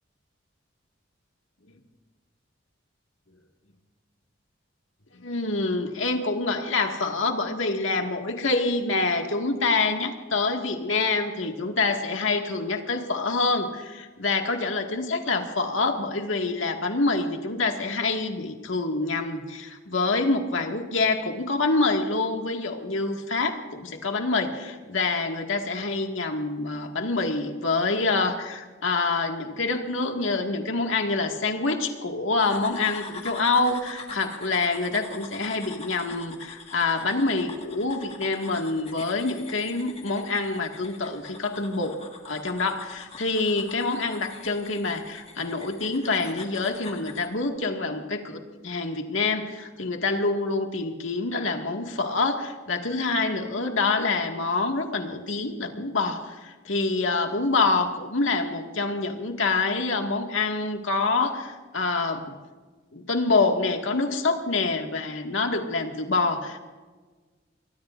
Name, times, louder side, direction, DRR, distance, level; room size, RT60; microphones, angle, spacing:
voice 1, 5.1-62.3 62.9-66.6, left 3 dB, 85° left, 3 dB, 1.9 m, -26 dB
sound 1, 32.4-47.3, left 4 dB, 30° left, 1.7 m, -44 dB
24.5 x 22.0 x 2.6 m, 1.4 s
head